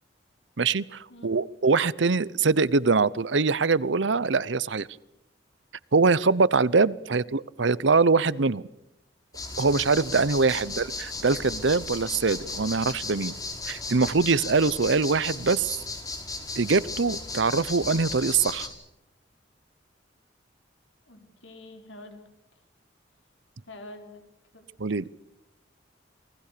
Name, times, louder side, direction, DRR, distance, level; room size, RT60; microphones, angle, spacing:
voice 1, 0.6-4.9 5.9-8.7 9.6-13.3 13.7-15.8 16.6-18.7 24.8-25.1, right 4 dB, 70° right, 20 dB, 0.8 m, -23 dB
sound 1, 9.3-18.7, left 3 dB, 20° left, 4.8 m, -36 dB
voice 2, 21.1-22.3 23.6-24.2 24.5-24.6, left 1 dB, 80° left, 5 dB, 4.7 m, -46 dB
29.0 x 20.0 x 6.8 m, 0.92 s
head